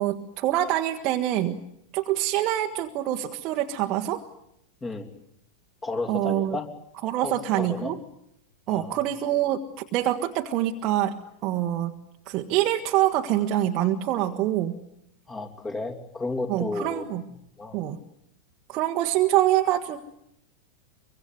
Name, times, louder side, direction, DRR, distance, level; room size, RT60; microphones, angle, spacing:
voice 1, 0.0-1.6 1.9-4.2 6.1-6.6 7.0-8.0 8.7-11.9 12.3-14.8 16.5-17.2 17.7-18.0 18.7-20.0, right 13 dB, 40° right, 3 dB, 1.5 m, -25 dB
voice 2, 5.8-6.7 7.2-7.9 8.7-9.0 15.3-17.1 17.6-17.8, left 3 dB, 15° left, 5 dB, 3.1 m, -32 dB
24.5 x 24.0 x 9.5 m, 0.79 s
figure-of-eight pair, 90°, 0 cm